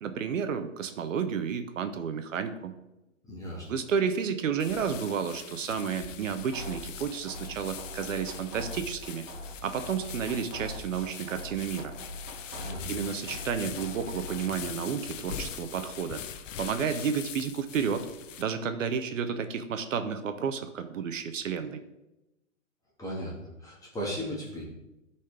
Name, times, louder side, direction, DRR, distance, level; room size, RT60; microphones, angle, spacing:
voice 1, 0.0-2.7 3.7-9.2 9.6-11.9 12.9-16.2 16.6-18.1 18.4-21.8, right 7 dB, 80° right, 9 dB, 0.9 m, -31 dB
voice 2, 3.2-3.7 12.5-13.0 23.0-24.6, equal, 10° left, -4 dB, 1.8 m, -36 dB
sound 1, 4.6-18.4, left 9 dB, 75° left, 0.7 m, -42 dB
sound 2, 6.5-14.5, left 1 dB, 30° right, 2.1 m, -43 dB
12.0 x 4.3 x 3.4 m, 0.97 s
hypercardioid pair, 140°, 38 cm